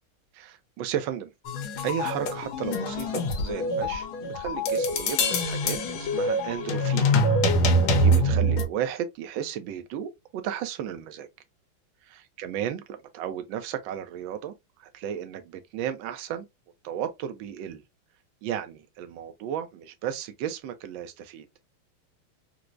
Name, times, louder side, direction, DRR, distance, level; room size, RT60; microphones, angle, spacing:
voice 1, 0.3-1.3 1.8-7.1 7.5-11.3 12.1-14.5 14.8-16.4 16.8-17.8 18.4-21.5, right 9 dB, 75° right, 1.3 m, -34 dB
sound 1, 1.5-8.6, equal, 85° left, 1.7 m, -24 dB
4.5 x 2.0 x 2.4 m
omnidirectional pair, 2.3 m